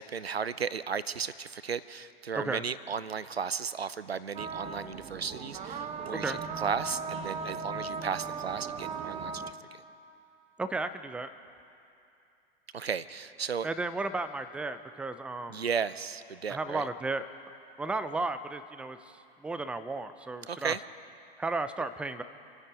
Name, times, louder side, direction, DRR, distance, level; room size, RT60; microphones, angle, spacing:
voice 1, 0.0-9.8 12.7-13.7 15.5-16.9 20.5-20.8, right 6 dB, 85° right, 16 dB, 0.6 m, -35 dB
sound 1, 4.3-9.5, right 5 dB, 20° right, 1.0 m, -37 dB
voice 2, 10.6-11.3 13.6-15.6 16.5-17.2 17.8-19.0 19.4-20.7 21.4-22.2, right 3 dB, 5° right, 11 dB, 0.4 m, -34 dB
27.5 x 9.8 x 5.2 m, 2.6 s
figure-of-eight pair, 100°, 30 cm